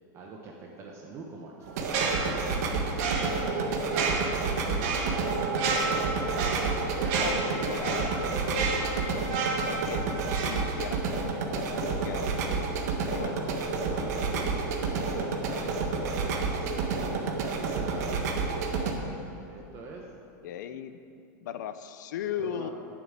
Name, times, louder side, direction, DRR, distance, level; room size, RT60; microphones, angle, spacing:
voice 1, 0.1-3.8 4.6-5.7 13.1-13.5 13.8-18.1 19.4-20.1 22.4-22.7, right 3 dB, 30° right, -1 dB, 1.0 m, -45 dB
sound 1, 1.7-18.9, right 4 dB, 60° right, 1.5 m, -30 dB
sound 2, 1.8-11.2 11.5-11.7, right 4 dB, 45° right, 1.9 m, -32 dB
voice 2, 6.8-12.4 13.1-13.4 20.4-21.0 21.4-22.7, left 9 dB, 75° left, 11 dB, 0.6 m, -38 dB
9.5 x 7.4 x 8.9 m, 2.6 s
supercardioid pair, 165°, 10 cm